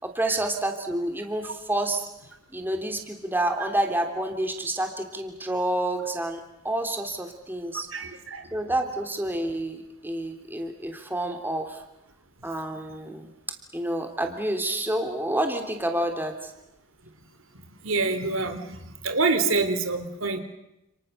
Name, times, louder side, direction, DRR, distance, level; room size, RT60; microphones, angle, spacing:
voice 1, 0.0-2.1 2.5-7.9 8.5-11.8 12.4-13.3 13.7-16.5, right 1 dB, 10° right, 4 dB, 3.2 m, -29 dB
voice 2, 7.9-8.5 17.8-20.4, right 3 dB, 70° right, 8 dB, 3.3 m, -26 dB
29.5 x 29.0 x 6.8 m, 0.88 s
head